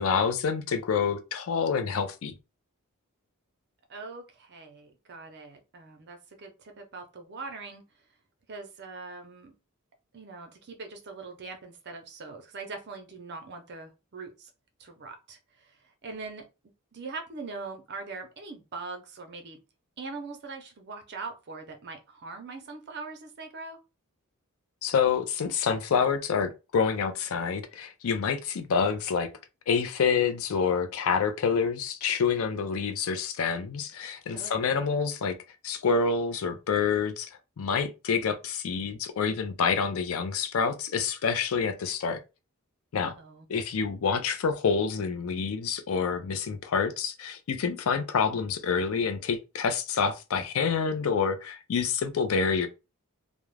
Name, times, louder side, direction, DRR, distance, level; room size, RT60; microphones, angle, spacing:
voice 1, 0.0-2.3 24.8-29.3 29.7-35.3 35.6-37.3 37.6-42.2 42.9-43.1 43.5-52.7, left 6 dB, 65° left, 0.4 m, -27 dB
voice 2, 3.9-7.8 8.5-9.5 10.1-14.5 14.8-16.5 16.9-19.6 20.0-23.8 34.3-34.9 43.0-43.5, right 4 dB, 50° right, 0.6 m, -42 dB
2.3 x 2.0 x 3.1 m
head